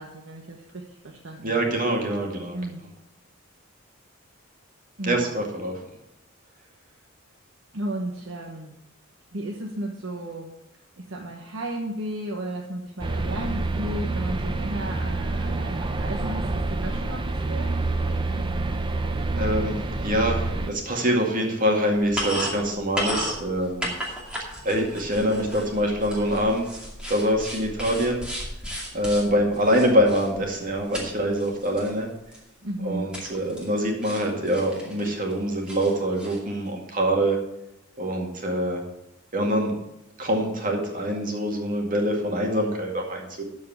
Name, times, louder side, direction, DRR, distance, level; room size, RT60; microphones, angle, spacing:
voice 1, 0.0-1.8 2.5-2.8 5.0-5.3 7.7-8.7 9.3-10.5 11.0-17.8 32.6-33.1, right 1 dB, 70° right, 0 dB, 1.2 m, -34 dB
voice 2, 1.4-2.6 5.1-5.7 19.3-19.8 20.0-23.9 24.6-26.7 27.1-28.2 28.9-32.1 32.8-37.4 38.0-38.8 39.3-39.7 40.2-43.4, equal, 40° right, 1 dB, 2.1 m, -24 dB
sound 1, 13.0-20.7, right 2 dB, 25° right, 0.6 m, -27 dB
sound 2, 21.9-31.1 31.3-31.9 32.3-32.4 33.1-33.8 34.0-35.3 35.7-36.4, equal, 5° right, 2.4 m, -35 dB
13.0 x 4.7 x 7.3 m, 0.86 s
head